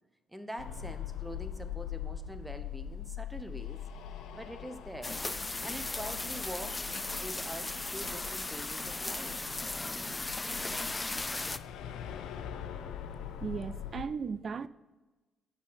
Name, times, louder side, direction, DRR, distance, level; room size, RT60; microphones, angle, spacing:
voice 1, 0.3-3.8 4.3-5.2 5.6-9.4, equal, 5° right, 0.9 m, -44 dB
sound 1, 0.6-14.0, left 9 dB, 85° left, 0.7 m, -43 dB
sound 2, 5.0-11.6, left 2 dB, 20° left, 0.4 m, -36 dB
voice 2, 13.4-14.7, right 5 dB, 45° right, 0.4 m, -36 dB
8.3 x 5.5 x 5.2 m
cardioid pair, 90°, 0 cm